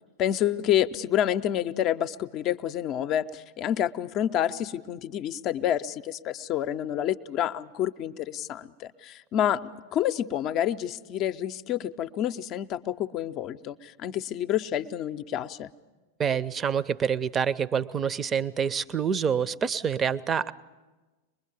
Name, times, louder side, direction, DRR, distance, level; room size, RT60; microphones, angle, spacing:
voice 1, 0.2-9.6 9.9-15.7, left 11 dB, 35° left, 13 dB, 0.6 m, -28 dB
voice 2, 16.2-20.5, right 7 dB, 20° right, 19 dB, 0.6 m, -27 dB
24.0 x 21.0 x 7.0 m, 1.2 s
figure-of-eight pair, 90°, 0 cm